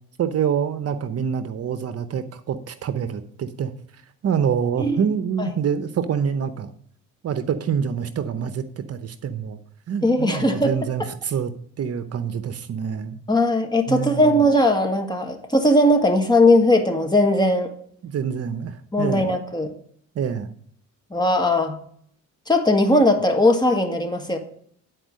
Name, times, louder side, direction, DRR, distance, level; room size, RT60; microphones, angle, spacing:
voice 1, 0.2-3.7 4.2-6.7 7.2-9.6 9.9-11.5 11.8-13.2 13.9-14.4 18.0-19.3 20.1-20.5, right 7 dB, 55° right, 11 dB, 0.8 m, -26 dB
voice 2, 10.0-10.7 13.3-17.7 18.9-19.7 21.1-21.7 22.5-24.4, left 1 dB, 15° left, 4 dB, 1.7 m, -19 dB
9.9 x 4.5 x 6.3 m, 0.62 s
cardioid pair, 90°, 30 cm